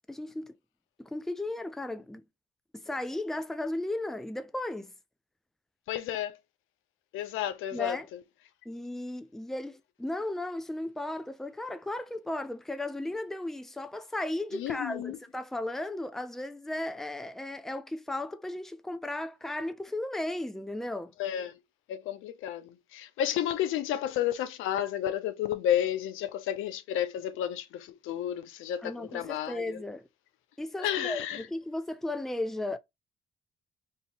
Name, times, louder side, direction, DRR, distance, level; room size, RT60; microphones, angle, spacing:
voice 1, 0.1-0.6 1.0-2.2 2.7-4.9 7.7-8.1 8.7-21.1 28.8-30.1 30.6-32.8, left 1 dB, ahead, 0.4 m, -35 dB
voice 2, 5.9-6.4 7.1-8.0 14.5-15.2 21.2-21.5 21.9-29.8 30.8-31.4, left 11 dB, 90° left, 0.6 m, -31 dB
2.8 x 2.7 x 4.1 m
cardioid pair, 90°, 20 cm